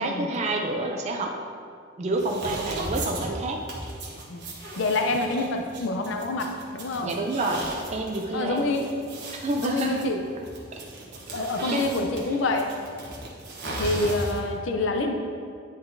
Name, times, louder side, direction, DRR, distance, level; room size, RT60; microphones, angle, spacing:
voice 1, 0.0-1.4 2.0-3.7 7.0-8.7 9.4-10.0 11.7-11.8, right 2 dB, 35° right, 1 dB, 0.4 m, -28 dB
sound 1, 2.2-14.6, right 1 dB, 55° right, 1.0 m, -37 dB
voice 2, 4.3-7.1 8.3-8.9 9.6-10.2 11.3-12.7 13.8-15.1, left 2 dB, 65° left, 3 dB, 0.5 m, -27 dB
9.5 x 3.9 x 2.6 m, 2.2 s
head